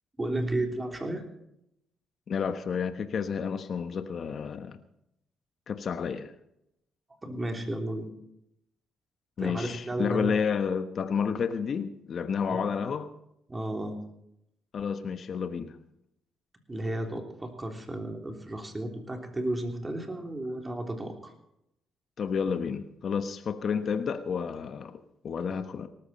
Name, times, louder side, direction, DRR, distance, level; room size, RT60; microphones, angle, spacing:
voice 1, 0.2-1.2 7.2-8.1 9.4-10.4 12.5-12.7 13.5-14.0 16.7-21.3, right 1 dB, 20° right, 3 dB, 3.3 m, -33 dB
voice 2, 2.3-4.8 5.7-6.3 9.4-13.1 14.7-15.7 22.2-25.0 25.2-25.9, left 6 dB, 55° left, 9 dB, 1.1 m, -30 dB
18.5 x 14.0 x 4.3 m, 0.79 s
cardioid pair, 85°, 0 cm